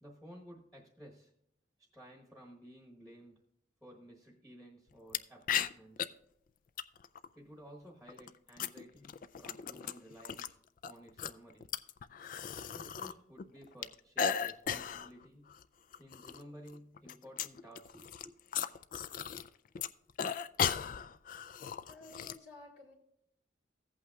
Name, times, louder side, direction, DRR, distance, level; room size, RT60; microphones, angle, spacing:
voice 1, 0.0-1.3 1.8-3.4 3.8-6.1 7.3-10.6 10.8-11.7 12.7-15.5 16.0-18.4, equal, ahead, -1 dB, 1.1 m, -54 dB
sound 1, 5.1-5.2 5.5-6.1 6.8-7.3 8.1-10.5 10.8-13.1 13.4-15.1 15.5-15.6 15.9-16.4 16.7-19.5 19.7-22.4, left 8 dB, 45° left, 0.3 m, -36 dB
voice 2, 21.9-22.9, left 2 dB, 65° left, -1 dB, 2.6 m, -53 dB
15.5 x 8.4 x 2.3 m, 0.77 s
head